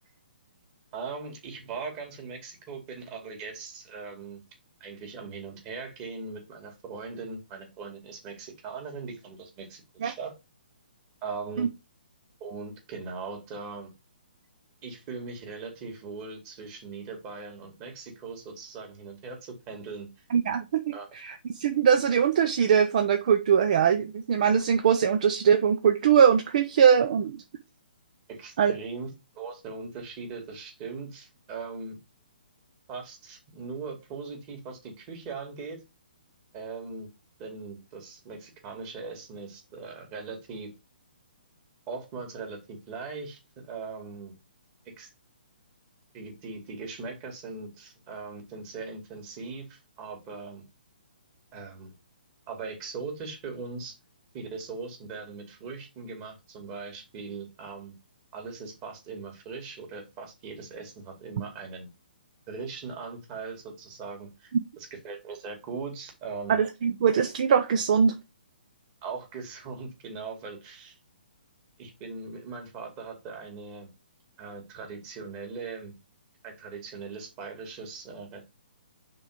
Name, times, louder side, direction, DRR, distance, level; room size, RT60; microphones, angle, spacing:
voice 1, 0.9-4.4 4.8-10.3 11.2-11.7 12.4-13.9 14.8-20.1 20.9-21.1 28.3-29.1 29.3-32.0 32.9-35.8 36.5-37.1 37.4-40.7 41.9-44.3 45.0-45.1 46.1-50.6 51.5-51.9 52.5-53.9 54.3-57.9 58.3-61.9 62.5-66.6 69.0-71.0 71.8-73.9 74.4-75.9 76.4-78.4, right 4 dB, 30° right, 2 dB, 2.5 m, -40 dB
voice 2, 20.3-20.8 21.1-27.4 28.6-28.7 66.5-68.1, right 7 dB, 50° right, 7 dB, 0.7 m, -22 dB
6.1 x 3.9 x 5.0 m, 0.25 s
figure-of-eight pair, 130°, 5 cm